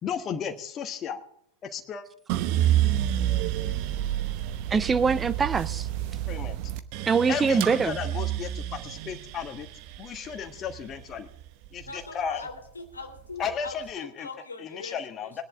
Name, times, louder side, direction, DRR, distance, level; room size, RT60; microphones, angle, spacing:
voice 1, 0.0-1.2 1.6-2.0 6.3-6.6 7.3-9.7 10.0-11.3 11.7-12.4 13.4-14.3 14.6-15.4, left 7 dB, 25° left, 1.4 m, -34 dB
sound 1, 2.3-12.5 12.9-13.7, right 12 dB, 45° right, 0.9 m, -29 dB
voice 2, 4.7-5.9 7.1-8.0, right 5 dB, 15° right, 0.5 m, -23 dB
voice 3, 11.9-15.0 15.2-15.4, left 3 dB, 75° left, 2.3 m, -41 dB
20.0 x 10.5 x 3.6 m
figure-of-eight pair, 90°, 0 cm